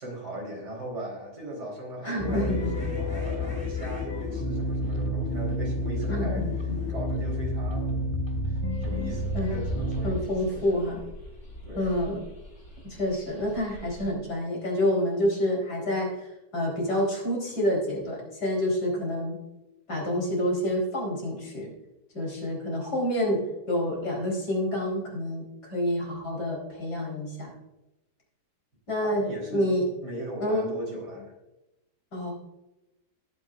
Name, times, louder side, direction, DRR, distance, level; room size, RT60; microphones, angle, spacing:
voice 1, 0.0-6.4 6.9-8.2 8.5-10.8 11.6-11.9 29.0-29.7 30.0-31.3, right 1 dB, 80° right, -1 dB, 4.7 m, -38 dB
voice 2, 2.0-2.7 6.1-6.8 9.3-9.6 10.0-11.0 11.7-12.2 12.8-19.4 19.9-21.7 22.1-27.5 28.9-29.9 30.4-30.7 32.1-32.3, left 1 dB, 75° left, -3 dB, 4.8 m, -28 dB
sound 1, 2.2-10.1, left 1 dB, 15° left, 2.4 m, -29 dB
sound 2, 8.7-14.1, equal, 50° left, 4.9 m, -45 dB
19.0 x 9.5 x 2.6 m, 0.96 s
omnidirectional pair, 1.8 m